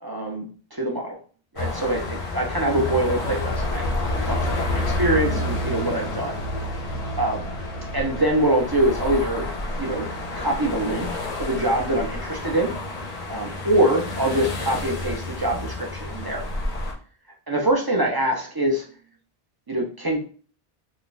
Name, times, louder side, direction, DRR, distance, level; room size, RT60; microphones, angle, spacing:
voice 1, 0.0-1.2 1.5-6.4 7.0-7.5 7.9-9.5 9.8-10.1 10.3-12.7 13.3-16.4 17.5-18.9 19.7-20.2, right 1 dB, 35° right, -1 dB, 0.4 m, -24 dB
sound 1, 1.6-16.9, left 2 dB, 45° left, 0.6 m, -29 dB
2.5 x 2.2 x 3.8 m, 0.40 s
omnidirectional pair, 1.0 m